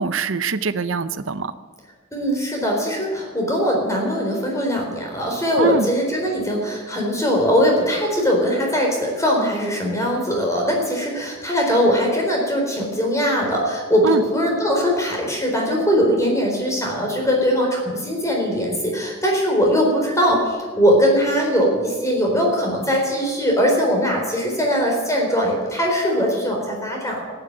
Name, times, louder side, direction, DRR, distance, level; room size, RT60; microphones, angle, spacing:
voice 1, 0.0-1.5 5.6-5.9 14.0-14.2, right 5 dB, 65° right, 13 dB, 0.7 m, -23 dB
voice 2, 2.1-27.2, equal, 15° left, 0 dB, 4.2 m, -21 dB
14.0 x 10.0 x 9.0 m, 1.4 s
head